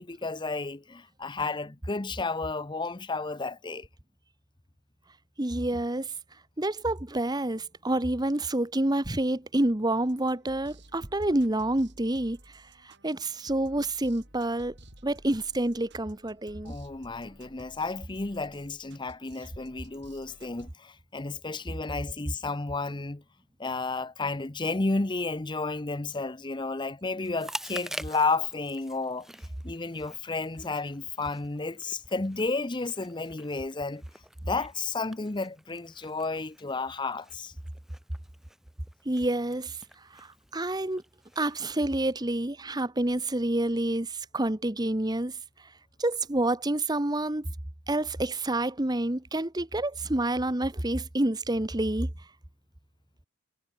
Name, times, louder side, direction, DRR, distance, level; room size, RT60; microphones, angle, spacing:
voice 1, 0.0-3.9 16.6-23.2 23.6-29.3 29.6-34.0 34.4-37.5, left 3 dB, 25° left, 0.8 m, -32 dB
voice 2, 5.4-6.1 6.6-12.4 12.8-14.7 15.0-16.7 39.0-39.8 40.1-40.3 40.5-41.0 41.4-45.3 46.0-47.5 47.9-52.1, right 1 dB, 20° right, 1.2 m, -28 dB
sound 1, 10.1-20.7, right 1 dB, 60° right, 7.7 m, -54 dB
Chewing mastication, 27.2-41.9, equal, ahead, 6.4 m, -47 dB
head